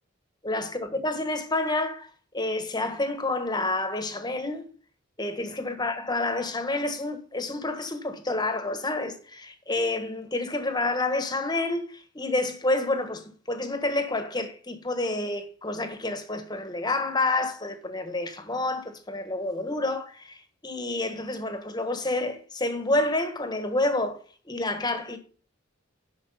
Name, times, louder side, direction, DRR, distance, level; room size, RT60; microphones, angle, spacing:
voice 1, 0.4-4.6 5.2-24.2 24.4-25.2, left 2 dB, 20° left, 1.4 m, -29 dB
10.5 x 6.2 x 5.6 m
head